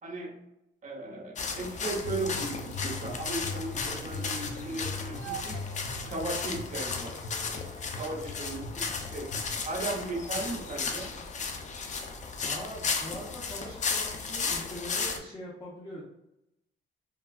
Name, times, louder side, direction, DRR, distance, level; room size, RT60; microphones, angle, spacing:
voice 1, 0.0-0.3 0.8-5.6 6.0-7.2 8.0-9.3 9.6-11.1, right 2 dB, 40° right, 0 dB, 0.9 m, -36 dB
sound 1, 1.4-15.2, left 5 dB, 40° left, 0.4 m, -35 dB
sound 2, 2.0-9.6, left 3 dB, 55° left, 0.8 m, -41 dB
sound 3, 3.8-8.9, right 9 dB, 70° right, 0.4 m, -48 dB
voice 2, 12.4-16.0, equal, 20° left, -8 dB, 0.8 m, -42 dB
3.3 x 2.2 x 2.3 m, 0.85 s
cardioid pair, 90°, 20 cm